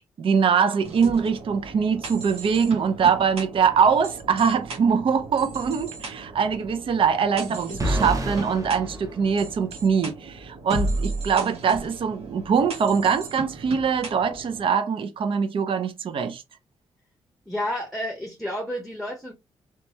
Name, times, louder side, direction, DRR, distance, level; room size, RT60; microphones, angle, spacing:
voice 1, 0.2-16.4, right 6 dB, 55° right, 0.5 m, -23 dB
sound 1, 0.8-14.7, right 2 dB, 75° right, 1.0 m, -36 dB
sound 2, 7.8-9.9, right 1 dB, 30° right, 0.9 m, -29 dB
voice 2, 17.5-19.3, left 1 dB, 5° left, 0.8 m, -30 dB
2.9 x 2.2 x 2.7 m
supercardioid pair, 60°, 11 cm